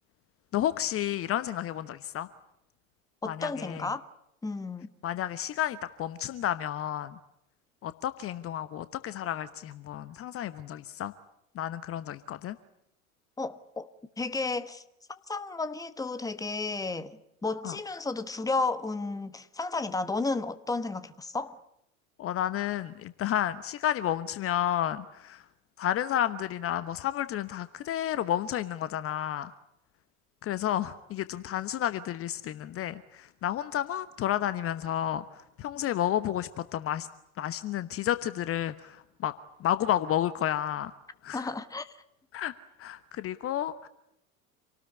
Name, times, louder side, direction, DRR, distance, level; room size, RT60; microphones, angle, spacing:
voice 1, 0.5-2.3 3.2-3.9 5.0-7.2 7.8-11.1 11.5-12.6 17.6-17.8 22.2-25.4 25.8-29.5 30.4-37.1 37.4-39.3 39.6-40.9 41.2-41.5 42.3-42.5 42.8-43.9, left 11 dB, 30° left, 1.1 m, -31 dB
voice 2, 3.2-4.0 4.4-4.9 13.4-13.9 14.2-14.8 15.1-21.6 41.3-41.9, left 3 dB, 10° left, 1.3 m, -33 dB
27.5 x 18.5 x 9.7 m
figure-of-eight pair, 80°, 42 cm